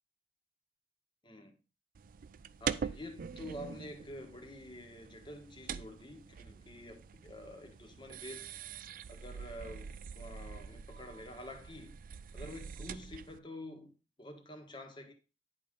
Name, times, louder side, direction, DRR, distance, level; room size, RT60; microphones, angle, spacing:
voice 1, 1.2-1.6 2.6-8.5 9.1-12.0 12.3-13.9 14.2-15.1, left 1 dB, 30° left, 1.4 m, -48 dB
sound 1, 1.9-13.4, right 6 dB, 50° right, 0.4 m, -44 dB
10.0 x 3.8 x 5.2 m
head